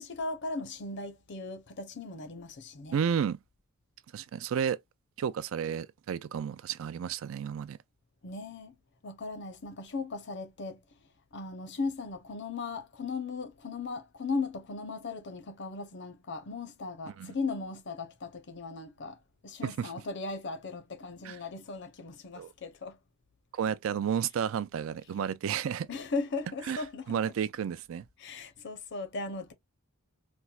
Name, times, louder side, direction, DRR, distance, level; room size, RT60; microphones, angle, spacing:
voice 1, 0.0-3.0 8.2-8.8 9.0-10.8 11.3-23.0 25.9-27.3 28.2-29.5, left 3 dB, 55° left, 0.6 m, -37 dB
voice 2, 2.9-3.4 4.1-4.8 5.2-7.8 17.2-17.3 19.6-19.9 21.2-21.4 22.4-22.5 23.5-25.9 26.7-26.8 27.1-28.0, right 7 dB, 65° right, 0.3 m, -32 dB
4.3 x 2.1 x 2.3 m
head